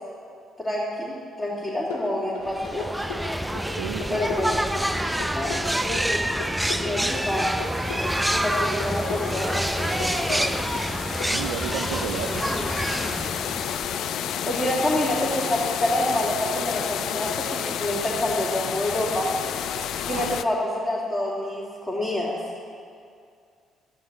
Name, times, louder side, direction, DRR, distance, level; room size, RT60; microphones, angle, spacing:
voice 1, 0.6-2.9 4.1-4.5 5.3-5.6 5.8-6.2 6.5-7.6 8.4-10.3 14.5-19.3 20.1-20.6 20.8-22.4, left 1 dB, 10° left, -7 dB, 2.4 m, -27 dB
sound 1, 1.9-11.3, left 5 dB, 85° left, 0.9 m, -36 dB
sound 2, 2.5-14.1, right 1 dB, 5° right, 0.4 m, -27 dB
voice 2, 3.7-4.2 11.3-12.5 20.1-20.4, right 11 dB, 80° right, 6 dB, 0.3 m, -33 dB
sound 3, 6.9-20.4, left 9 dB, 65° left, 0.3 m, -31 dB
12.5 x 9.0 x 3.9 m, 2.3 s
hypercardioid pair, 50°, 0 cm